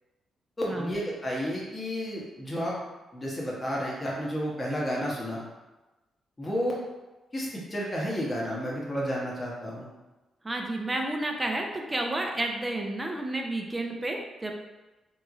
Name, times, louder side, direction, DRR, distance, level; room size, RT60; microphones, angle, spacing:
voice 1, 0.6-2.7 3.1-5.4 6.4-6.8 7.3-9.9, equal, 30° left, -5 dB, 1.0 m, -31 dB
voice 2, 10.4-14.5, right 1 dB, 25° right, 2 dB, 0.5 m, -31 dB
3.6 x 3.0 x 2.5 m, 1.1 s
supercardioid pair, 55°, 0 cm